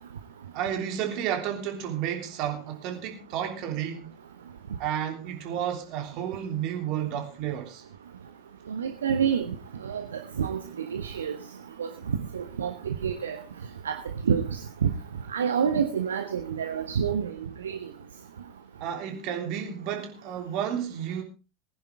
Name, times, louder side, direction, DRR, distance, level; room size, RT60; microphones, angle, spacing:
voice 1, 0.5-4.1 4.8-7.8 18.8-21.2, right 9 dB, 45° right, 3.3 m, -31 dB
voice 2, 8.7-9.5 9.8-10.0 10.4-10.6 10.9-11.4 11.8-13.4 13.8-14.0 14.2-14.9 15.3-17.3 17.6-17.8, right 7 dB, 70° right, 1.2 m, -28 dB
20.0 x 10.5 x 3.6 m
figure-of-eight pair, 80°, 0 cm